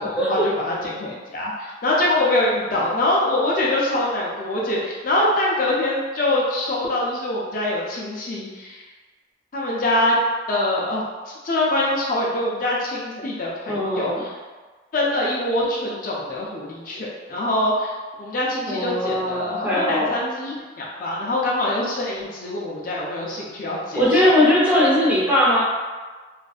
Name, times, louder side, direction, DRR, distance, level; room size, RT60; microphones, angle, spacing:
voice 1, 0.0-8.8 9.5-10.2 10.5-14.3 14.9-24.3, left 1 dB, 50° left, -4 dB, 0.4 m, -24 dB
voice 2, 13.7-14.2 18.7-20.1 20.8-21.0 24.0-25.6, left 1 dB, 10° right, -9 dB, 0.6 m, -19 dB
2.5 x 2.3 x 2.4 m, 1.4 s
head